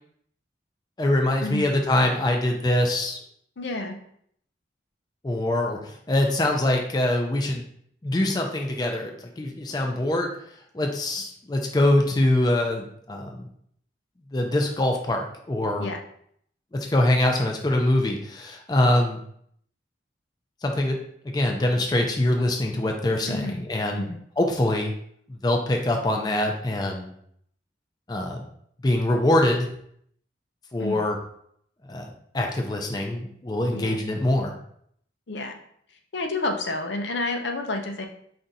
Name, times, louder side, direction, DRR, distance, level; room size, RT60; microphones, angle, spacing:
voice 1, 1.0-3.2 5.2-7.6 8.0-10.3 10.7-13.4 14.3-15.9 16.7-19.2 20.6-21.0 21.2-24.9 25.3-27.1 28.1-28.5 28.8-29.7 30.7-31.2 31.9-34.5, left 1 dB, 20° left, 2 dB, 0.4 m, -24 dB
voice 2, 3.6-4.0 15.8-16.0 23.3-23.6 24.0-24.2 30.8-31.0 33.7-34.0 35.3-35.6 36.1-38.1, left 2 dB, 80° left, 4 dB, 0.6 m, -29 dB
4.5 x 2.6 x 4.0 m, 0.68 s
head